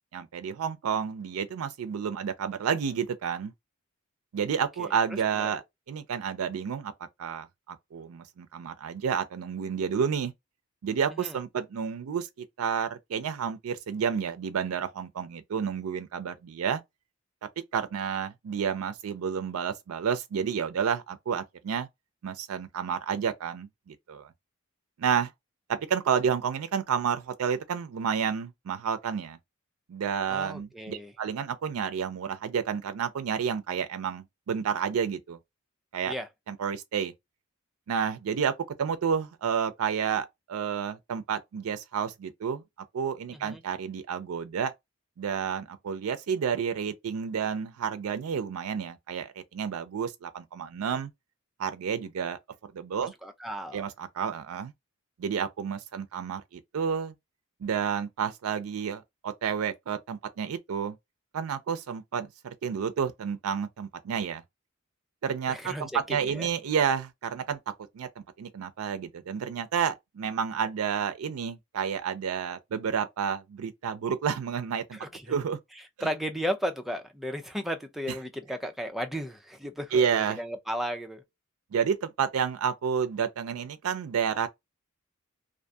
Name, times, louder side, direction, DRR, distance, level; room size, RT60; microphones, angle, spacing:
voice 1, 0.1-3.5 4.3-6.9 7.2-10.3 10.8-12.3 12.6-16.8 17.7-21.9 22.2-24.3 25.0-25.3 25.7-29.4 29.9-35.4 35.9-36.2 36.5-37.1 37.9-42.6 42.9-44.7 45.2-51.1 51.6-52.4 52.7-53.1 53.7-54.7 55.2-57.1 57.6-61.0 61.3-64.4 65.2-67.6 67.9-75.0 75.3-75.6 76.0-76.1 79.9-80.4 81.7-84.5, right 7 dB, 90° right, 0.4 m, -30 dB
voice 2, 30.3-31.1 36.1-36.3 43.4-43.6 53.2-53.8 65.5-66.5 74.9-75.3 76.0-81.2, equal, ahead, 0.4 m, -34 dB
2.6 x 2.4 x 2.2 m
head